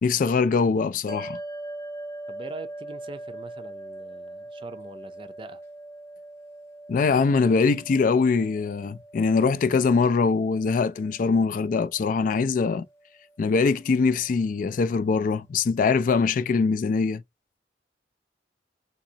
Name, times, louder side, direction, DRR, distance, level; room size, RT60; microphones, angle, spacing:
voice 1, 0.0-1.4 6.9-12.8 13.4-17.2, left 4 dB, 50° left, 0.3 m, -22 dB
sound 1, 1.1-13.6, right 1 dB, 15° left, 0.9 m, -42 dB
voice 2, 2.3-5.6, right 3 dB, 30° right, 0.5 m, -42 dB
3.8 x 2.8 x 2.7 m
head